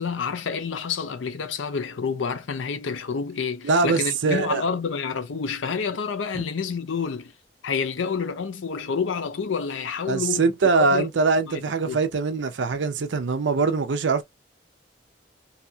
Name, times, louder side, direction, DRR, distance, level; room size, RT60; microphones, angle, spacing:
voice 1, 0.0-7.3 7.6-10.5 10.9-11.1 11.5-12.1, left 5 dB, 80° left, 0.5 m, -28 dB
voice 2, 3.6-4.6 6.3-6.4 10.1-14.2, right 4 dB, 70° right, 0.5 m, -22 dB
2.7 x 2.2 x 2.7 m
head